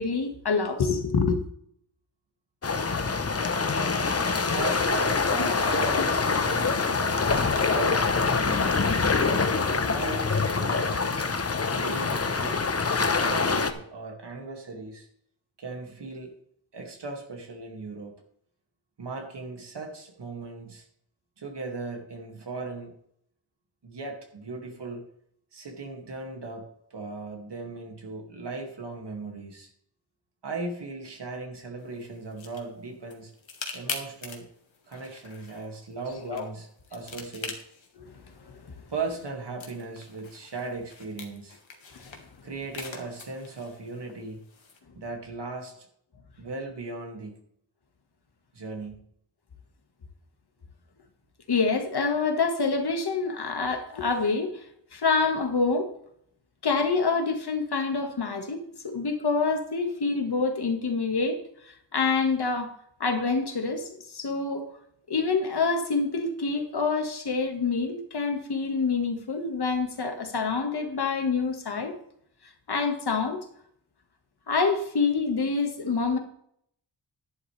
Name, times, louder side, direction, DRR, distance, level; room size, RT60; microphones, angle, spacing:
voice 1, 0.0-1.4 36.3-36.5 38.0-38.1 38.5-38.6 41.9-42.0 51.5-54.7 54.9-55.9 56.6-61.4 61.6-62.7 63.0-64.7 65.1-72.0 72.7-73.4 74.5-76.2, left 4 dB, 60° left, 1.8 m, -26 dB
sound 1, 2.6-13.7, left 4 dB, 30° left, 0.9 m, -25 dB
voice 2, 4.5-7.2 7.6-8.7 9.3-11.2 11.7-12.6 12.8-15.1 15.6-16.3 16.7-18.2 19.0-20.8 21.4-22.9 23.8-25.0 25.5-29.7 30.4-33.3 33.7-34.5 34.9-37.6 38.9-41.6 42.4-44.4 45.0-45.9 46.4-47.4 48.5-49.0, right 3 dB, 65° right, 2.3 m, -38 dB
sound 2, 31.8-44.8, left 4 dB, 85° left, 2.0 m, -44 dB
11.5 x 11.0 x 3.4 m
wide cardioid pair, 125°, 45 cm